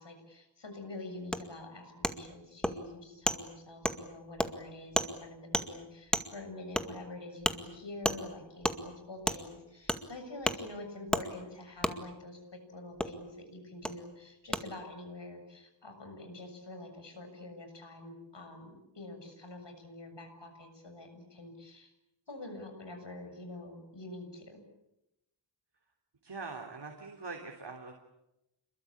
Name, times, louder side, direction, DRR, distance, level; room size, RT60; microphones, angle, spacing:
voice 1, 0.0-21.9 22.3-24.6, left 2 dB, 65° left, 6 dB, 7.2 m, -46 dB
Wood, 1.3-1.4 2.0-2.1 2.6-2.7 3.3-3.4 3.8-4.0 4.4-4.5 5.0-5.1 5.5-5.7 6.1-6.3 6.8-6.9 7.4-7.6 8.0-8.2 8.6-8.8 9.3-9.4 9.9-10.0 10.4-10.6 11.1-11.2 11.8-11.9 13.0-13.1 13.8-13.9 14.5-14.6, equal, ahead, 2.1 m, -30 dB
voice 2, 26.2-27.9, right 4 dB, 60° right, 3 dB, 3.4 m, -43 dB
28.5 x 22.0 x 8.7 m, 0.90 s
wide cardioid pair, 70°, 46 cm